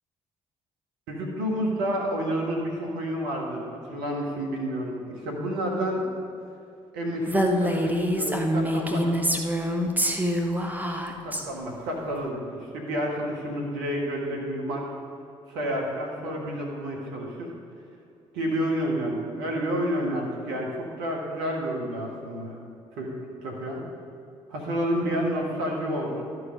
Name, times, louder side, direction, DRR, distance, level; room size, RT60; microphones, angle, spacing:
voice 1, 1.1-6.1 6.9-9.2 11.2-12.4 12.7-14.9 15.5-17.5 18.3-22.6 22.9-23.1 23.4-23.8 24.5-26.3, equal, 75° right, -1 dB, 1.5 m, -29 dB
Female speech woman speaking, 7.3-11.4, equal, 10° right, 1.0 m, -25 dB
13.0 x 4.7 x 5.1 m, 2.6 s
hypercardioid pair, 50°, 16 cm